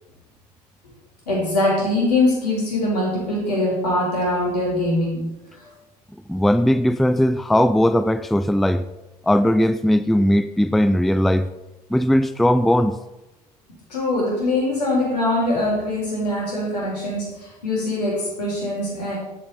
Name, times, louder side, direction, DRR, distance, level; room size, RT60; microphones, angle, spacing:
voice 1, 1.3-5.3 13.9-17.3 17.6-19.2, left 1 dB, 75° left, -3 dB, 4.6 m, -22 dB
voice 2, 6.3-8.9 9.2-11.5 11.9-12.9, equal, ahead, 12 dB, 0.5 m, -18 dB
11.5 x 8.8 x 4.2 m, 0.98 s
figure-of-eight pair, 65°, 21 cm